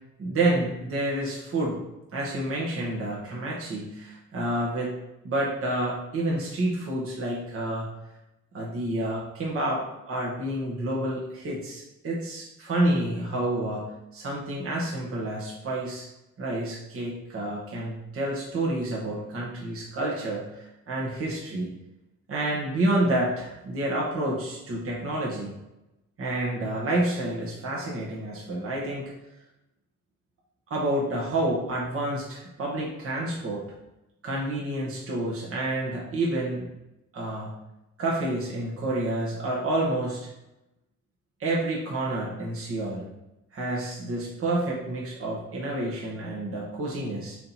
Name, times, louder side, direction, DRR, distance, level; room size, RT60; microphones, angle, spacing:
voice 1, 0.2-1.8 2.1-5.0 5.2-7.9 8.5-16.1 16.4-21.7 22.3-25.5 26.2-29.1 30.7-33.7 34.2-36.7 37.1-37.5 38.0-40.3 41.4-43.1 43.5-47.4, right 1 dB, 50° right, -4 dB, 1.5 m, -29 dB
5.1 x 4.5 x 4.2 m, 0.93 s
cardioid pair, 90°, 30 cm